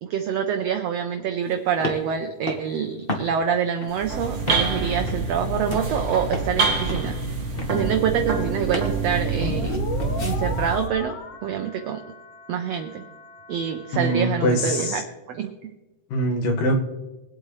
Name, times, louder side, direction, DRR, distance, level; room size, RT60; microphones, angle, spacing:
voice 1, 0.0-7.2 7.7-9.8 10.2-11.2 11.4-12.0 12.5-13.0 13.5-15.0 15.3-15.5, right 8 dB, 75° right, 5 dB, 1.5 m, -26 dB
sound 1, 1.4-10.4, left 2 dB, 35° left, 0.8 m, -36 dB
sound 2, 3.9-10.9, right 3 dB, 45° right, 1.0 m, -26 dB
sound 3, 9.2-14.9, left 4 dB, 55° left, 1.9 m, -36 dB
voice 2, 13.9-15.0 16.1-16.8, equal, 80° left, 1 dB, 3.4 m, -23 dB
22.5 x 8.5 x 3.3 m, 1.1 s
omnidirectional pair, 3.7 m